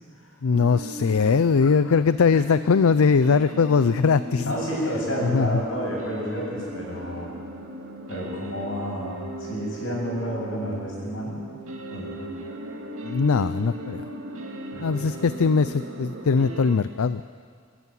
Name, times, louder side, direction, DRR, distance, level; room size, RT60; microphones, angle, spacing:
voice 1, 0.4-4.5 5.2-5.5 13.0-14.1 14.8-17.2, left 5 dB, 80° left, 14 dB, 0.5 m, -21 dB
sound 1, 0.5-16.8, right 1 dB, 75° right, 2.5 m, -37 dB
voice 2, 4.4-7.3 8.1-11.5 11.9-12.2 14.7-15.1, equal, 65° left, -3 dB, 7.9 m, -31 dB
24.0 x 14.5 x 9.3 m, 2.1 s
head